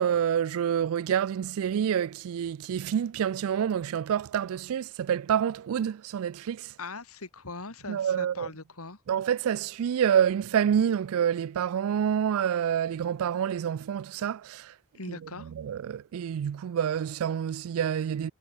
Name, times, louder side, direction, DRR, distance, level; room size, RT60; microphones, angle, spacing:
voice 1, 0.0-6.7 7.9-8.5 9.1-14.7 15.1-15.2 15.6-18.3, right 8 dB, 70° right, 0.3 m, -27 dB
voice 2, 6.8-9.0 14.9-15.5, left 3 dB, 75° left, 2.4 m, -41 dB
head